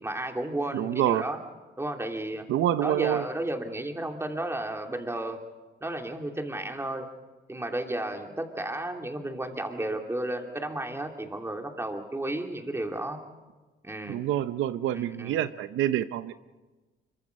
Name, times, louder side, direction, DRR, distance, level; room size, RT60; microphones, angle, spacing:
voice 1, 0.0-1.4 1.8-2.5 2.8-5.4 5.8-7.1 7.5-13.2 13.8-14.2 14.9-15.4, right 1 dB, 15° right, 3 dB, 3.0 m, -33 dB
voice 2, 0.7-1.2 2.5-3.2 14.1-16.3, right 12 dB, 85° right, 12 dB, 0.7 m, -27 dB
24.5 x 23.5 x 5.3 m, 1.2 s
cardioid pair, 90°, 20 cm